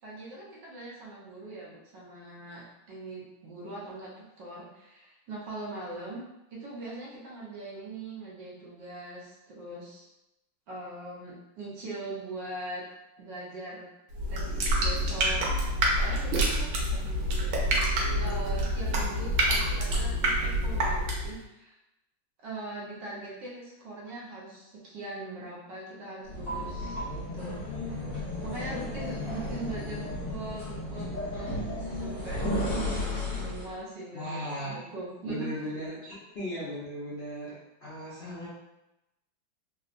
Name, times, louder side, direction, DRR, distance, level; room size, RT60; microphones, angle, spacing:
voice 1, 0.0-10.1 10.7-12.8 13.2-13.9 14.3-15.4 15.9-16.7 18.2-21.8 22.4-27.6 28.4-31.6 31.9-35.5, right 2 dB, 70° right, -5 dB, 1.2 m, -41 dB
sound 1, 14.1-21.4, right 1 dB, 90° right, 1.5 m, -27 dB
sound 2, 26.3-33.8, left 1 dB, 50° left, 1.3 m, -34 dB
voice 2, 34.1-34.7 35.2-38.5, equal, 70° left, -11 dB, 0.6 m, -37 dB
3.5 x 2.0 x 2.4 m, 0.93 s
omnidirectional pair, 2.2 m